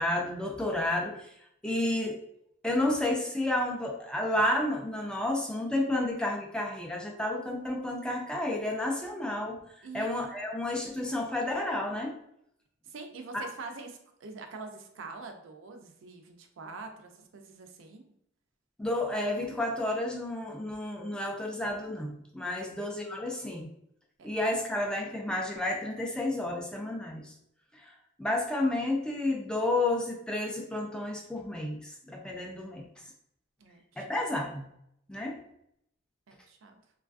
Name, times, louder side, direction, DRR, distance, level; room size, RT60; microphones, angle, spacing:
voice 1, 0.0-1.3 1.6-2.2 2.6-12.2 13.3-13.4 18.8-23.7 24.2-27.3 27.7-32.8 34.0-34.7 35.1-35.4, left 1 dB, 5° left, 0 dB, 0.3 m, -31 dB
voice 2, 12.8-18.1 22.6-22.7 24.2-24.3 33.6-34.2 36.3-36.8, right 4 dB, 70° right, 5 dB, 0.4 m, -45 dB
3.1 x 2.3 x 2.4 m, 0.72 s
head